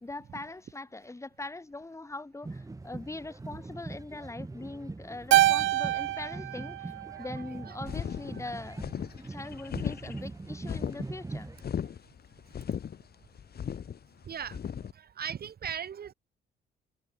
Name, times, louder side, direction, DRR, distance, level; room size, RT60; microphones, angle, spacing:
voice 1, 0.0-6.9 7.2-8.9 9.2-11.5, left 2 dB, 15° left, 2.2 m, -42 dB
sound 1, 2.4-11.7, right 2 dB, 15° right, 2.5 m, -42 dB
Keyboard (musical), 5.3-7.8, right 15 dB, 75° right, 0.6 m, -26 dB
sound 2, 7.9-14.9, left 8 dB, 50° left, 2.7 m, -37 dB
voice 2, 14.3-14.6 14.9-16.1, right 8 dB, 50° right, 2.1 m, -37 dB
cardioid pair, 90°, 20 cm